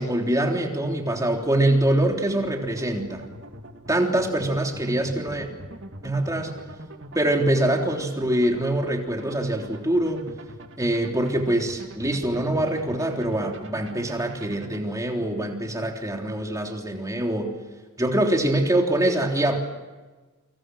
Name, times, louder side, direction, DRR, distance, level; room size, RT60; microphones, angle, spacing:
voice 1, 0.0-3.2 3.9-5.5 6.0-6.5 7.1-10.3 10.8-17.5 18.0-19.6, right 1 dB, 15° right, 2 dB, 3.5 m, -24 dB
sound 1, 1.3-14.8, right 1 dB, 55° right, 2.5 m, -42 dB
28.5 x 26.5 x 6.4 m, 1.3 s
head